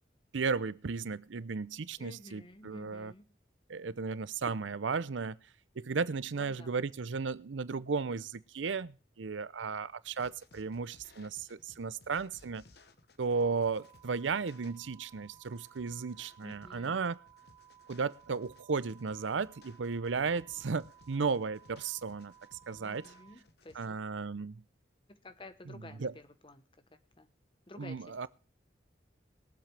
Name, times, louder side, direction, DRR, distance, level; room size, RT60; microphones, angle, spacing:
voice 1, 0.3-3.1 3.7-5.4 5.8-12.6 13.2-17.2 17.9-22.3 22.7-23.0 23.8-24.6 26.0-26.1 27.8-28.3, right 5 dB, 90° right, 0.6 m, -34 dB
voice 2, 2.0-3.3 6.3-6.7 16.4-17.0 20.4-20.7 22.8-24.0 25.1-27.3 27.7-28.3, left 1 dB, 25° left, 1.0 m, -52 dB
sound 1, 10.2-23.9, left 2 dB, 60° left, 1.2 m, -61 dB
sound 2, 13.3-23.3, right 11 dB, 25° right, 3.1 m, -59 dB
22.0 x 7.6 x 3.4 m
head